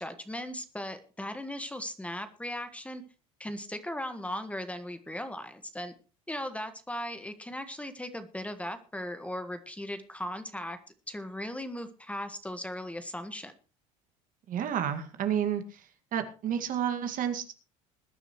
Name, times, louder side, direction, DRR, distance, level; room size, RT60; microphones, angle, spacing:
voice 1, 0.0-3.0 3.4-5.9 6.3-10.8 11.1-13.5, left 1 dB, 5° left, 9 dB, 1.6 m, -38 dB
voice 2, 14.5-15.8 16.1-17.5, right 9 dB, 50° right, 7 dB, 2.0 m, -30 dB
21.0 x 9.9 x 3.1 m, 0.35 s
hypercardioid pair, 75°, 17 cm